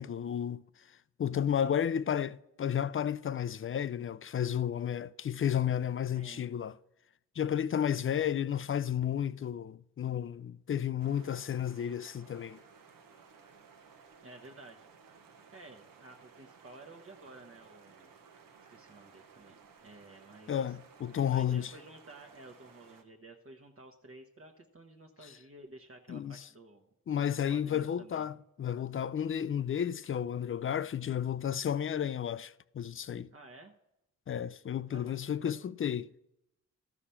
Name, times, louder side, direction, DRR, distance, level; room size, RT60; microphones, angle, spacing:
voice 1, 0.0-6.8 7.4-12.6 20.5-21.7 26.1-26.5 27.1-33.3 34.3-36.1, left 9 dB, 40° left, 0.4 m, -32 dB
voice 2, 6.1-6.5 14.2-14.9 15.5-18.1 18.7-20.8 21.3-26.8 27.5-28.3 33.3-33.7 34.9-35.3 35.6-35.7, right 2 dB, 40° right, 1.1 m, -53 dB
sound 1, 11.0-23.0, right 5 dB, 75° right, 1.1 m, -58 dB
13.0 x 4.9 x 5.7 m
cardioid pair, 60°, 34 cm